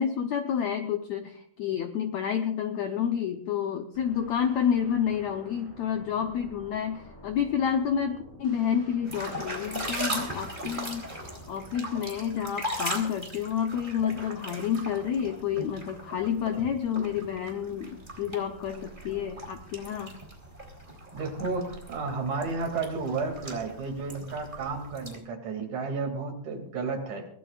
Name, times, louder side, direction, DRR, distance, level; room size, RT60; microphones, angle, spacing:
voice 1, 0.0-11.1 11.5-20.1, left 8 dB, 85° left, 6 dB, 1.5 m, -29 dB
sound 1, 3.9-11.9, equal, 5° left, 5.0 m, -50 dB
sound 2, 9.0-25.2, right 1 dB, 15° right, 3.1 m, -39 dB
voice 2, 21.1-27.3, right 4 dB, 55° right, 3 dB, 3.7 m, -32 dB
24.0 x 18.0 x 2.5 m, 0.63 s
omnidirectional pair, 4.4 m